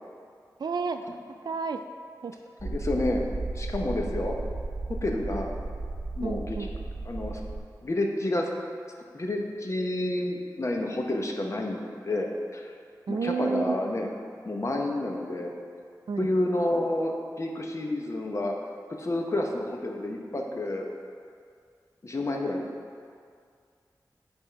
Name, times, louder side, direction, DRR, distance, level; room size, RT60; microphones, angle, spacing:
voice 1, 0.6-1.0 1.4-1.8 2.2-2.3 6.2-6.7 13.1-13.7 16.1-16.3, right 5 dB, 70° right, 8 dB, 0.3 m, -30 dB
voice 2, 2.6-3.2 3.6-4.3 5.0-5.5 6.2-6.6 7.1-7.4 7.8-8.5 9.1-11.8 12.1-12.7 13.1-14.1 14.4-15.5 16.2-18.5 19.0-20.9 22.0-22.6, left 1 dB, 40° left, 1 dB, 0.8 m, -29 dB
sound 1, 2.6-7.6, right 2 dB, 20° right, 1.1 m, -34 dB
8.5 x 3.5 x 4.5 m, 2.2 s
wide cardioid pair, 80°, 7 cm